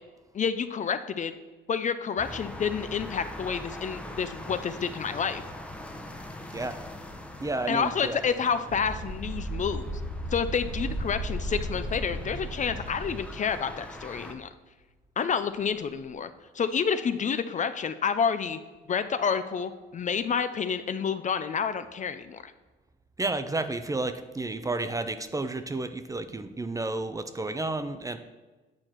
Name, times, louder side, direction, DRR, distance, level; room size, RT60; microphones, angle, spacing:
voice 1, 0.3-1.3 1.7-5.4 7.7-9.9 10.3-14.5 15.2-16.3 16.5-18.6 18.9-22.5, left 6 dB, 40° left, 11 dB, 0.4 m, -29 dB
sound 1, 2.2-14.3, left 1 dB, 5° left, 0.8 m, -43 dB
voice 2, 7.4-8.2 23.2-28.2, right 2 dB, 15° right, 10 dB, 0.5 m, -31 dB
sound 2, 8.7-13.6, right 1 dB, 50° right, 1.4 m, -35 dB
8.6 x 4.4 x 4.4 m, 1.2 s
cardioid pair, 90°, 20 cm